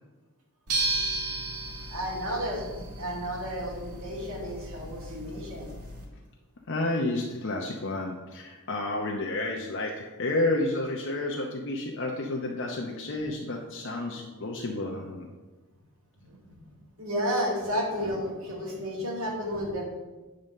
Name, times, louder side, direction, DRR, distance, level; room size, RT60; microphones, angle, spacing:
sound 1, 0.7-6.1, right 2 dB, 85° right, 2.0 m, -34 dB
voice 1, 1.9-5.7 16.2-16.4 17.0-19.8, equal, 65° right, -3 dB, 2.4 m, -32 dB
voice 2, 6.7-15.3, left 2 dB, 55° left, 0 dB, 0.8 m, -30 dB
8.9 x 3.9 x 6.5 m, 1.2 s
head